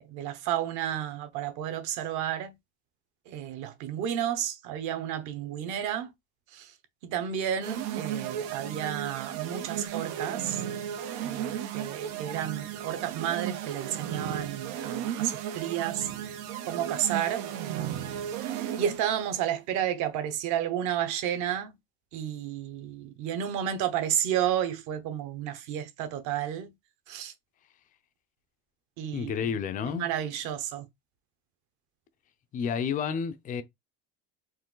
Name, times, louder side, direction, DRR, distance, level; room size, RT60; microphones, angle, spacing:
voice 1, 0.0-2.5 3.3-6.1 6.5-6.7 7.0-10.6 11.2-16.1 16.7-17.5 18.5-21.8 22.1-26.7 27.1-27.3 29.0-29.3 29.9-30.9, right 10 dB, 60° right, 1.1 m, -31 dB
sound 1, 7.6-19.2, right 10 dB, 90° right, 1.0 m, -35 dB
voice 2, 29.1-30.1 32.5-33.6, left 7 dB, 25° left, 0.5 m, -30 dB
4.6 x 2.6 x 3.8 m
cardioid pair, 170°, 34 cm